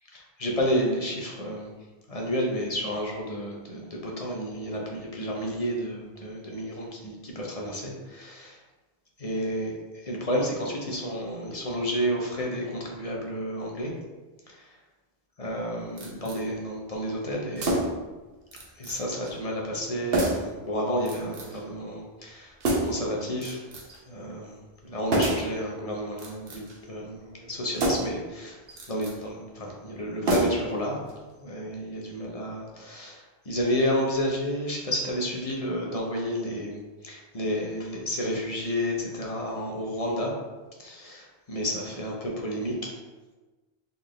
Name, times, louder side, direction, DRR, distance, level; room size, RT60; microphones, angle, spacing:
voice 1, 0.1-1.7 2.1-8.6 9.2-9.7 10.0-13.9 14.5-14.7 15.4-17.8 18.8-22.6 22.8-23.6 24.1-24.6 24.8-28.6 28.9-31.0 31.4-40.3 40.8-42.9, equal, 40° left, -1 dB, 0.9 m, -31 dB
sound 1, 16.0-16.4 17.6-18.1 18.5-19.0 19.2-19.4 20.1-20.5 21.1-21.6 22.6-23.1 23.4-24.0 25.1-25.5 26.1-26.8 27.7-28.2 28.7-29.2 30.2-30.8 31.1-31.2, right 1 dB, 65° right, 1.0 m, -28 dB
4.0 x 4.0 x 3.2 m, 1.2 s
omnidirectional pair, 1.1 m